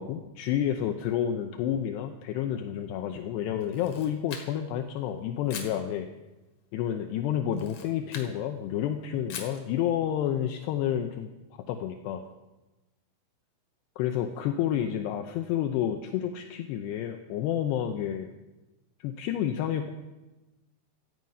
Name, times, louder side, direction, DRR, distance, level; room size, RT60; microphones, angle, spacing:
voice 1, 0.0-6.1 6.7-11.3 11.7-12.2 14.0-18.3 19.0-19.9, left 10 dB, 80° left, 5 dB, 2.6 m, -30 dB
Camera, 3.6-4.8 5.5-5.8 7.5-8.3 9.3-9.6, left 6 dB, 55° left, 2.8 m, -41 dB
17.0 x 13.0 x 5.4 m, 1.1 s
omnidirectional pair, 5.6 m